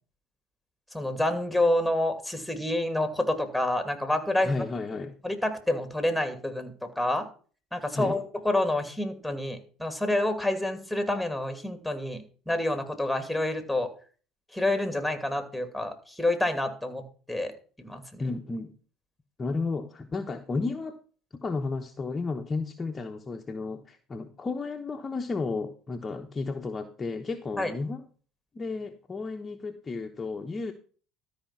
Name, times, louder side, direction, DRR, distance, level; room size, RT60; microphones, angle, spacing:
voice 1, 0.9-4.5 5.2-7.3 7.7-13.9 14.5-17.0 17.3-17.5 17.8-18.2 27.6-27.7, left 1 dB, ahead, 8 dB, 2.4 m, -28 dB
voice 2, 4.4-5.2 7.9-8.2 18.2-18.7 19.4-21.0 21.3-28.0 28.5-30.7, left 3 dB, 25° left, 4 dB, 1.0 m, -33 dB
13.0 x 5.1 x 5.8 m, 0.40 s
hypercardioid pair, 75°, 0 cm